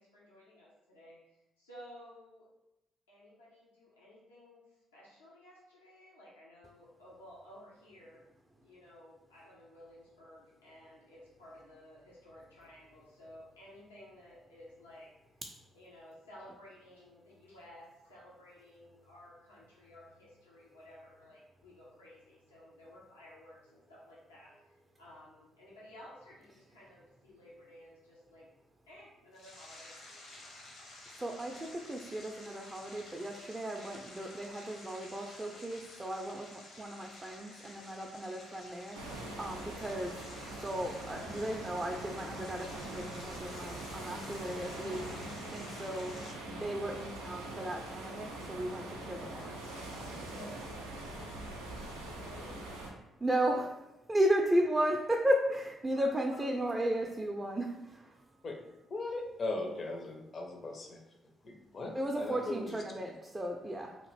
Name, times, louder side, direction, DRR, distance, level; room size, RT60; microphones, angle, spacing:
voice 1, 0.0-2.5 3.1-8.2 8.6-15.4 15.7-28.5 28.9-30.0 50.3-51.4 52.0-52.5 55.9-56.7, left 1 dB, 90° left, -6 dB, 0.7 m, -55 dB
sound 1, 29.3-46.3, left 2 dB, 65° left, 0.9 m, -52 dB
voice 2, 31.2-40.2 40.6-49.6 53.2-53.8 54.1-58.2 61.9-64.0, right 1 dB, 20° right, 1 dB, 0.4 m, -35 dB
sound 2, 38.9-52.9, right 1 dB, 90° right, 0.5 m, -43 dB
voice 3, 58.9-61.0 61.4-63.1, left 2 dB, 45° left, 3 dB, 0.6 m, -39 dB
2.8 x 2.4 x 3.1 m, 0.95 s
hypercardioid pair, 45°, 0 cm